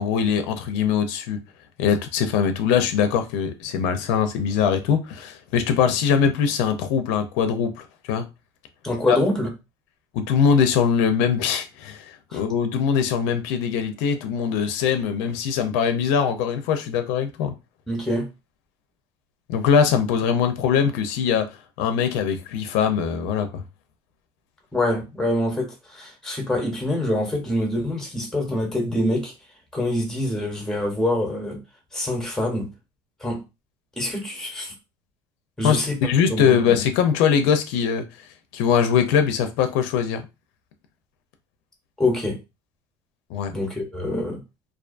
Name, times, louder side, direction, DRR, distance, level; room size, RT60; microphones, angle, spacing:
voice 1, 0.0-1.4 1.8-8.3 9.1-9.2 10.1-17.5 19.5-21.5 21.8-23.6 35.6-38.1 38.5-40.2 43.3-43.5, left 7 dB, 90° left, 0.5 m, -22 dB
voice 2, 8.8-9.5 12.3-12.4 17.9-18.3 24.7-29.3 29.7-31.6 31.9-32.7 33.2-33.4 34.0-34.7 35.6-36.8 42.0-42.4 43.5-44.4, left 1 dB, 5° left, 0.8 m, -25 dB
2.4 x 2.2 x 2.4 m
cardioid pair, 140°, 11 cm